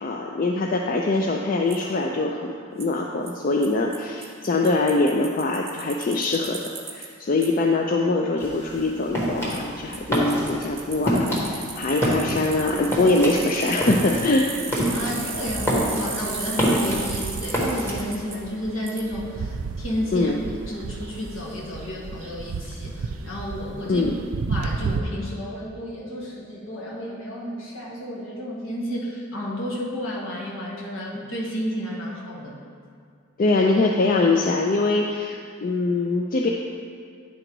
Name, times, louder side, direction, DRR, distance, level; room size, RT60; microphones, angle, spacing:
voice 1, 0.0-6.6 6.9-14.5 20.1-20.4 23.8-24.2 33.4-36.5, left 2 dB, 40° left, 1 dB, 0.3 m, -23 dB
Bicycle, 1.7-1.8 2.8-2.9 3.3-3.4 3.6-3.7 3.9-4.0 4.2-7.1 7.4-7.5 9.5-9.6 9.9-18.4 18.9-19.0, right 4 dB, 10° right, 0.6 m, -35 dB
sound 1, 8.4-17.9, equal, 10° left, 1.2 m, -26 dB
sound 2, 12.6-25.0, right 4 dB, 85° right, 0.4 m, -35 dB
voice 2, 14.8-20.3 20.7-24.0 24.5-32.6, equal, 70° left, -4 dB, 1.4 m, -32 dB
9.9 x 3.9 x 4.6 m, 2.2 s
head